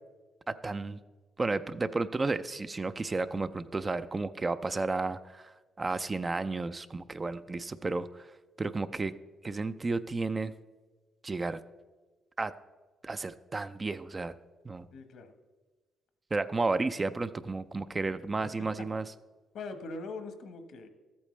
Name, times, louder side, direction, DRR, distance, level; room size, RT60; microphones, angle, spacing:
voice 1, 0.5-1.0 1.4-5.5 5.8-8.3 8.6-9.1 9.4-10.5 11.2-11.6 12.4-12.5 13.0-14.3 14.6-14.9 16.3-19.0, right 3 dB, 25° right, 11 dB, 0.4 m, -32 dB
voice 2, 14.9-15.3 18.4-18.9 19.5-20.9, left 3 dB, 70° left, 8 dB, 1.2 m, -42 dB
13.5 x 8.5 x 3.2 m, 1.3 s
cardioid pair, 90°, 0 cm